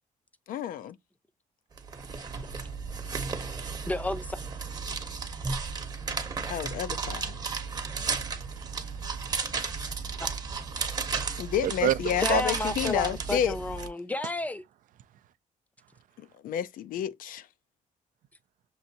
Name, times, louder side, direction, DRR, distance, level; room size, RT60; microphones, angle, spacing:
voice 1, 0.5-1.0 6.5-7.3 11.4-13.6 16.2-17.5, left 10 dB, 75° left, 0.5 m, -30 dB
sound 1, 1.8-13.9, right 5 dB, 30° right, 0.8 m, -34 dB
voice 2, 3.6-4.3 12.2-14.6, left 2 dB, 10° left, 0.5 m, -32 dB
voice 3, 8.6-10.2 10.8-11.2 11.6-12.4, right 12 dB, 70° right, 0.4 m, -32 dB
6.6 x 2.6 x 2.7 m
cardioid pair, 135°, 14 cm